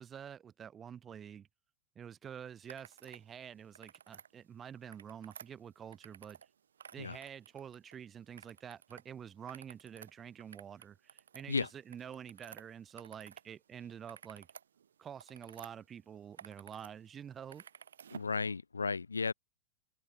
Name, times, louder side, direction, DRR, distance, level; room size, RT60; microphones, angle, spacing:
voice 1, 0.0-1.5 2.0-6.4 6.9-14.5 15.0-17.6, right 8 dB, 25° right, 5.7 m, -48 dB
sound 1, 2.6-3.2 3.6-4.3 4.8-6.5 6.7-8.0 8.4-9.0 9.4-13.5 13.8-15.7 16.1-16.9 17.2-18.3, right 8 dB, 65° right, 1.2 m, -54 dB
voice 2, 18.1-19.3, left 4 dB, 75° left, 0.7 m, -34 dB
figure-of-eight pair, 90°, 0 cm